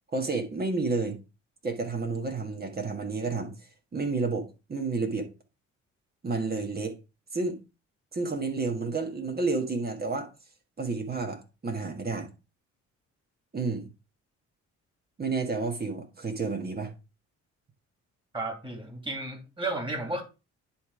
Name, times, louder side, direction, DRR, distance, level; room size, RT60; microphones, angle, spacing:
voice 1, 0.1-1.2 1.6-3.5 3.9-5.3 6.2-6.9 7.3-7.6 8.1-10.3 10.8-12.3 13.5-13.9 15.2-16.9, right 3 dB, 30° right, 1.6 m, -30 dB
voice 2, 18.3-20.2, right 2 dB, 15° right, 2.9 m, -33 dB
10.0 x 3.4 x 4.8 m
cardioid pair, 90°, 30 cm